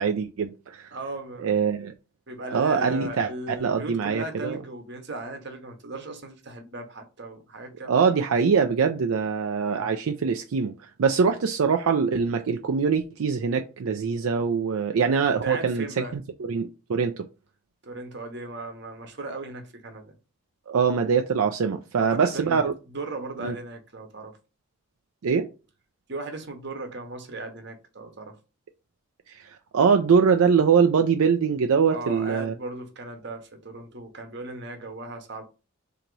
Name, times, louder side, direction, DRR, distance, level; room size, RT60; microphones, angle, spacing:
voice 1, 0.0-0.9 1.4-1.9 2.5-3.3 3.6-4.6 7.9-15.9 16.1-17.2 20.7-22.7 23.4-23.5 25.2-25.5 29.3-32.5, right 6 dB, 80° right, 0.4 m, -23 dB
voice 2, 0.9-1.6 2.3-8.2 9.8-10.0 15.4-16.2 17.8-20.1 22.0-24.4 26.1-28.4 31.9-35.4, right 2 dB, 55° right, 0.9 m, -37 dB
3.9 x 2.9 x 4.5 m
head